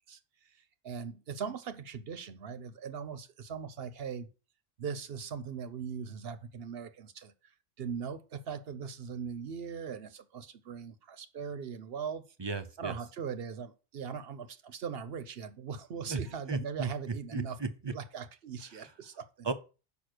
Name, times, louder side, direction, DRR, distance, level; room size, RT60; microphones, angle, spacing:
voice 1, 0.8-4.3 4.8-7.3 7.8-12.2 12.8-17.6 17.9-19.5, right 6 dB, 60° right, 0.9 m, -40 dB
voice 2, 12.4-12.9 16.1-16.2 16.5-16.9 17.3-17.9 19.4-19.5, right 4 dB, 35° right, 0.4 m, -34 dB
6.3 x 5.4 x 6.5 m
omnidirectional pair, 1.2 m